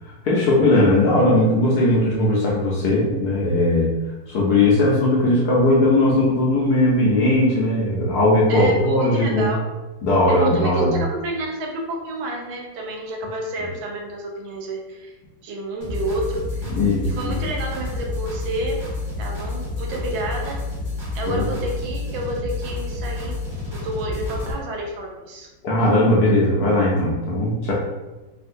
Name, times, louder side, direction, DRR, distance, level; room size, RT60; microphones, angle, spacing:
voice 1, 0.2-3.9 4.3-9.5 10.0-10.9 16.7-17.4 21.3-21.4 25.6-27.7, left 1 dB, 70° left, -5 dB, 1.0 m, -18 dB
voice 2, 8.5-9.6 10.3-15.1 15.4-16.7 17.0-18.8 19.2-20.6 21.1-25.5, right 2 dB, 80° right, 0 dB, 1.4 m, -29 dB
sound 1, 15.8-24.5, left 3 dB, 20° right, 0.9 m, -29 dB
3.5 x 2.4 x 2.5 m, 1.1 s
omnidirectional pair, 2.1 m